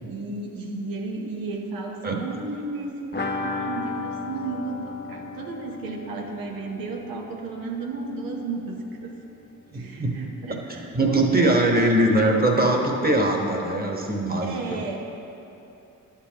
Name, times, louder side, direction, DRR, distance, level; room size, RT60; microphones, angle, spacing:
voice 1, 0.1-9.2 9.7-12.1 14.4-15.0, right 3 dB, 85° right, 1 dB, 1.0 m, -33 dB
sound 1, 3.1-8.7 9.0-9.1 9.4-9.5, left 3 dB, 30° left, 0.8 m, -35 dB
voice 2, 9.7-10.2 10.5-14.8, right 1 dB, 25° right, 1 dB, 1.3 m, -22 dB
11.0 x 7.3 x 2.9 m, 2.9 s
supercardioid pair, 50°, 34 cm